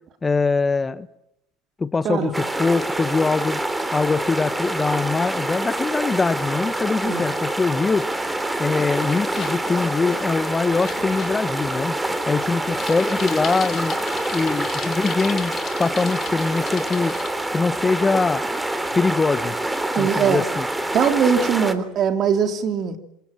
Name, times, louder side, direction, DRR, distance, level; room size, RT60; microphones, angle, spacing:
voice 1, 0.2-1.1 1.8-3.6 3.9-8.0 8.6-12.0 12.3-13.9 14.3-17.1 17.5-18.4 18.9-19.6 20.0-20.7, left 4 dB, 20° left, 1.2 m, -23 dB
sound 1, 2.3-21.7, right 1 dB, 10° right, 3.4 m, -26 dB
Bicycle, 7.8-17.3, left 8 dB, 40° left, 3.3 m, -38 dB
voice 2, 19.9-20.4 20.9-23.0, right 7 dB, 45° right, 3.2 m, -21 dB
27.0 x 26.5 x 7.5 m
hypercardioid pair, 70°, 0 cm